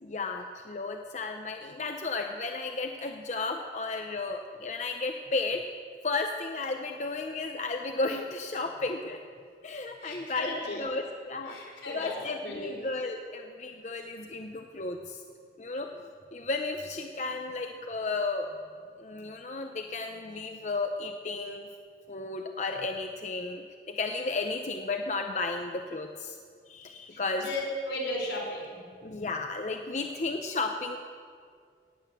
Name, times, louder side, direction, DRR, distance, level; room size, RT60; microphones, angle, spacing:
voice 1, 0.0-5.6 6.0-9.2 9.6-15.2 15.6-16.0 16.3-18.5 19.0-21.7 22.1-26.4 26.7-27.5 29.0-31.0, left 3 dB, 40° left, 4 dB, 0.7 m, -33 dB
voice 2, 10.0-10.8 11.5-12.8 27.1-28.9, left 1 dB, 85° left, -2 dB, 4.5 m, -36 dB
18.0 x 8.8 x 7.3 m, 2.2 s
head